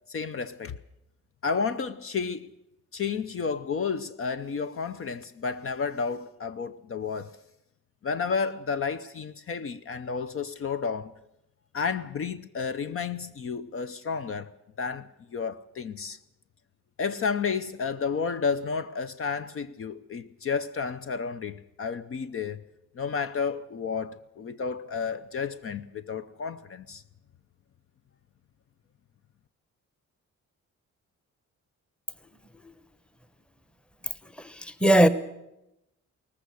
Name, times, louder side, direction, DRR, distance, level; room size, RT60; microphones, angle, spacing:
voice 1, 0.1-0.8 1.4-2.5 2.9-7.4 8.0-11.1 11.7-14.5 14.8-16.2 17.0-22.7 22.9-27.0, left 5 dB, 45° left, 0.7 m, -31 dB
voice 2, 34.4-35.1, right 1 dB, 5° left, 0.9 m, -20 dB
19.0 x 15.0 x 9.5 m
wide cardioid pair, 145°, 30 cm